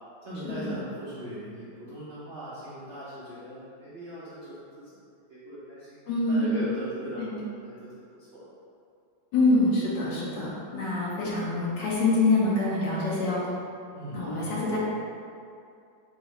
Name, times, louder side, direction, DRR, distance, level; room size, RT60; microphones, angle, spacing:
voice 1, 0.2-5.0 5.3-6.0 6.3-7.9 8.2-8.5 13.9-14.8, equal, 70° right, -10 dB, 0.5 m, -39 dB
voice 2, 6.1-6.5 7.2-7.4 9.3-13.4 14.1-14.8, left 2 dB, 75° left, -6 dB, 1.5 m, -25 dB
6.0 x 2.1 x 3.0 m, 2.4 s
omnidirectional pair, 2.0 m